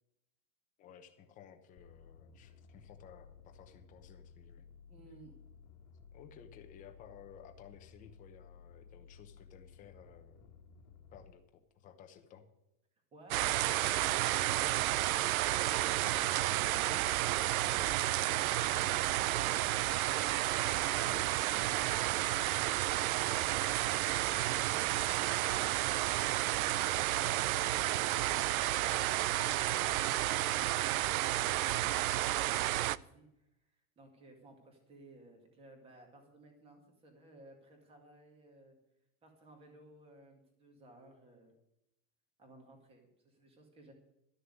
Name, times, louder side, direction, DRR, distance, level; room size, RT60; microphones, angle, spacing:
voice 1, 0.8-4.7 6.1-10.4 11.1-12.5 20.9-21.9, left 8 dB, 20° left, 6 dB, 0.9 m, -56 dB
sound 1, 1.8-11.3, left 6 dB, 65° left, 1.4 m, -57 dB
voice 2, 4.9-5.4 13.1-14.9 20.5-21.5 30.7-38.8 39.2-41.5 42.4-43.9, right 2 dB, 15° right, 3 dB, 2.1 m, -58 dB
sound 2, 13.3-33.0, right 15 dB, 85° right, 0.6 m, -31 dB
13.0 x 6.6 x 9.5 m, 0.85 s
supercardioid pair, 180°, 41 cm